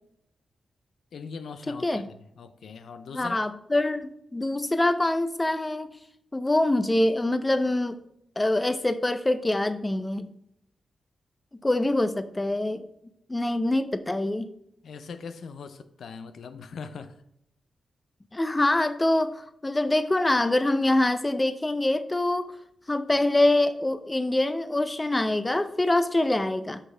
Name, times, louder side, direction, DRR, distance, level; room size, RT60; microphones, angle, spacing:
voice 1, 1.1-3.4 14.8-17.2, left 5 dB, 80° left, 0.6 m, -41 dB
voice 2, 1.7-2.1 3.1-5.9 6.3-8.0 8.4-10.3 11.6-12.8 13.3-14.5 18.3-22.6 22.9-26.8, left 1 dB, 20° left, 0.5 m, -25 dB
8.1 x 5.5 x 3.4 m
cardioid pair, 75°, 0 cm